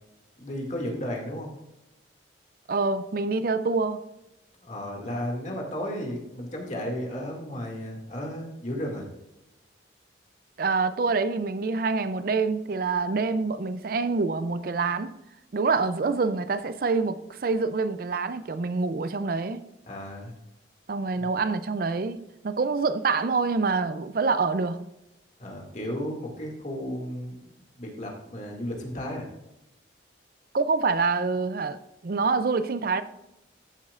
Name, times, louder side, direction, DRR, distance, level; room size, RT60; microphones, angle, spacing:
voice 1, 0.4-1.5 4.6-9.1 19.9-20.3 21.2-21.3 25.4-27.4 27.8-29.3, equal, 40° left, 2.1 m, -34 dB
voice 2, 2.7-4.0 10.6-15.1 15.5-19.7 20.9-24.9 30.5-33.0, right 4 dB, 50° right, 0.4 m, -26 dB
14.0 x 7.4 x 2.4 m
head